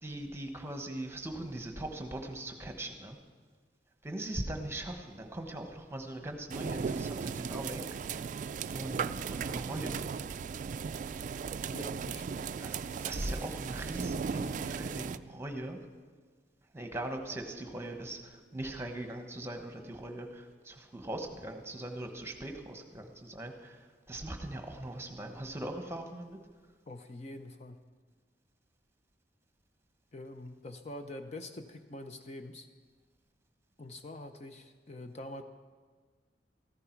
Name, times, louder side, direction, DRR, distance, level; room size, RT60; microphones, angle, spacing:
voice 1, 0.0-3.2 4.0-8.0 8.6-10.0 12.6-12.7 13.0-15.8 16.7-23.8 24.1-26.4, right 1 dB, 15° right, 5 dB, 1.2 m, -40 dB
sound 1, 6.5-15.2, right 6 dB, 45° right, 0.3 m, -37 dB
voice 2, 11.7-12.5 26.9-27.8 30.1-32.7 33.8-35.4, left 1 dB, 40° left, 7 dB, 0.6 m, -45 dB
14.5 x 13.5 x 4.6 m, 1.5 s
head